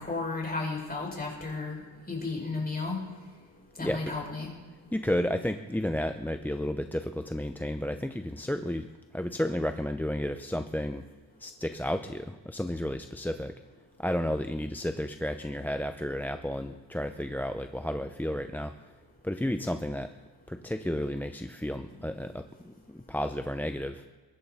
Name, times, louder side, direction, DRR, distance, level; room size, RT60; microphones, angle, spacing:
voice 1, 0.0-3.0 3.8-4.5, left 3 dB, 20° left, -2 dB, 5.7 m, -33 dB
voice 2, 3.8-4.1 4.9-8.9 9.1-11.1 11.4-13.5 14.0-18.7 19.2-20.1 20.5-24.0, left 1 dB, 5° left, 8 dB, 0.5 m, -32 dB
23.0 x 11.0 x 4.1 m, 1.4 s
cardioid pair, 95°, 44 cm